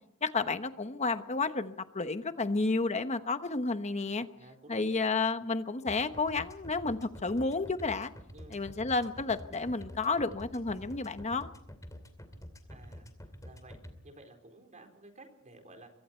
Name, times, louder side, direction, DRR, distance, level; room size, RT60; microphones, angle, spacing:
voice 1, 0.2-4.3 4.7-8.1 8.5-11.5, left 3 dB, 30° left, 10 dB, 1.0 m, -31 dB
voice 2, 4.4-5.0 8.3-8.6 12.7-13.1 13.4-13.8 14.0-15.9, right 2 dB, 35° right, 4 dB, 4.3 m, -53 dB
sound 1, 5.9-13.9, equal, 15° left, 2.7 m, -47 dB
25.5 x 23.5 x 4.5 m, 0.71 s
head